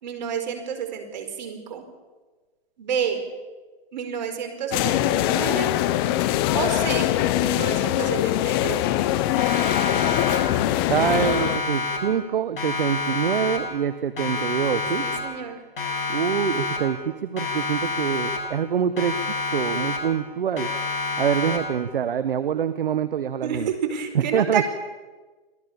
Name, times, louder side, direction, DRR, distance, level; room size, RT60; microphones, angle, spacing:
voice 1, 0.0-1.8 2.8-3.2 3.9-5.8 6.5-8.9 15.0-15.6 23.4-24.6, right 7 dB, 45° right, 7 dB, 4.6 m, -29 dB
sound 1, 4.7-11.6, left 13 dB, 25° left, 0.9 m, -22 dB
Siren, 9.4-10.7 11.0-12.3 12.6-13.9 14.2-15.5 15.8-17.1 17.4-18.7 19.0-20.3 20.6-21.9, left 3 dB, 65° left, 7.5 m, -29 dB
voice 2, 10.9-15.0 16.1-19.2 19.5-20.7 21.2-23.7 24.1-24.6, right 8 dB, 60° right, 13 dB, 1.3 m, -25 dB
26.0 x 17.5 x 7.1 m, 1.3 s
hypercardioid pair, 145°, 31 cm